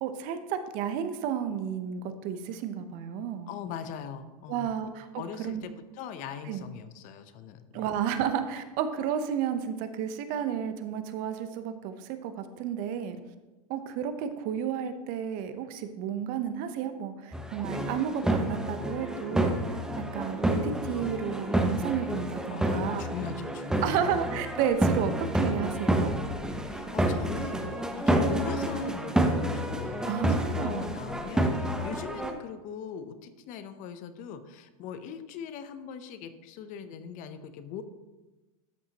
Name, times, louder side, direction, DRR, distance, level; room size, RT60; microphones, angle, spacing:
voice 1, 0.0-3.5 4.5-5.6 6.5-6.7 7.7-13.2 13.7-23.0 23.8-26.1 30.1-31.0, right 8 dB, 50° right, 10 dB, 0.7 m, -32 dB
voice 2, 3.5-4.8 5.1-7.9 22.5-24.1 25.1-25.2 26.7-37.8, left 7 dB, 45° left, 11 dB, 0.7 m, -41 dB
sound 1, 17.3-32.3, right 1 dB, 5° right, 0.8 m, -29 dB
12.5 x 5.6 x 2.9 m, 1.1 s
hypercardioid pair, 110°, 19 cm